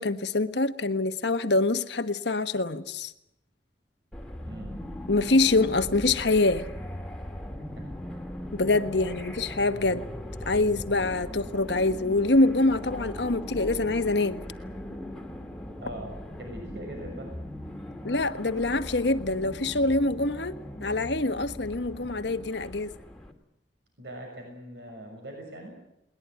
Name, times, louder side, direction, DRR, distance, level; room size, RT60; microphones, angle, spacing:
voice 1, 0.0-3.1 5.1-6.7 8.5-10.1 10.5-14.4 18.0-20.5 20.8-22.9, left 2 dB, 75° left, 10 dB, 1.3 m, -25 dB
sound 1, 4.1-23.3, left 1 dB, 5° left, 2.2 m, -39 dB
voice 2, 16.4-17.3 24.0-25.7, right 1 dB, 70° right, 2 dB, 6.6 m, -41 dB
21.0 x 20.0 x 9.2 m, 0.82 s
head